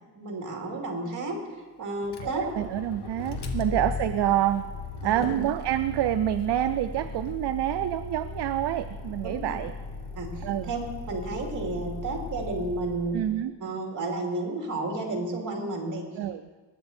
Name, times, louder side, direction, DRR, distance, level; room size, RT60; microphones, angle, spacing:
voice 1, 0.2-1.4 1.8-2.5 3.6-3.8 5.0-5.3 9.2-9.6 10.2-10.8 11.1-13.3 13.6-16.0, right 2 dB, 45° right, 0 dB, 2.6 m, -32 dB
Motor vehicle (road), 2.0-13.2, left 4 dB, 60° left, 1.4 m, -37 dB
voice 2, 2.2-4.7 5.0-9.7 10.4-10.7 13.1-13.5 16.2-16.4, right 12 dB, 70° right, 10 dB, 0.5 m, -27 dB
20.0 x 7.6 x 4.3 m, 1.3 s
wide cardioid pair, 155°, 44 cm